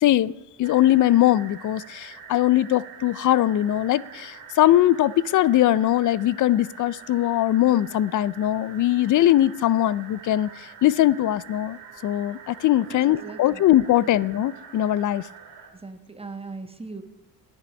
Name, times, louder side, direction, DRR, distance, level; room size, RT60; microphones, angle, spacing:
voice 1, 0.0-15.2, left 13 dB, 45° left, 21 dB, 0.4 m, -21 dB
sound 1, 0.6-15.7, right 6 dB, 85° right, 2.3 m, -45 dB
voice 2, 12.9-13.6 14.0-14.1 15.7-17.0, right 3 dB, 15° right, 7 dB, 1.2 m, -39 dB
10.5 x 10.0 x 5.2 m, 0.94 s
cardioid pair, 95°, 43 cm